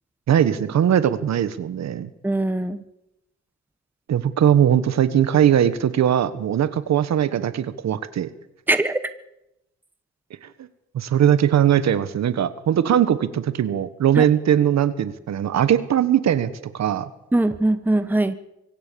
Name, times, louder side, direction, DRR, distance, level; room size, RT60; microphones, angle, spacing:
voice 1, 0.3-2.1 4.1-8.3 10.4-10.5 10.9-17.1, right 9 dB, 60° right, 13 dB, 1.5 m, -20 dB
voice 2, 2.2-2.8 8.7-9.0 14.2-14.3 17.3-18.3, right 2 dB, 5° right, 11 dB, 1.3 m, -21 dB
24.5 x 16.0 x 7.1 m, 0.87 s
cardioid pair, 90°, 30 cm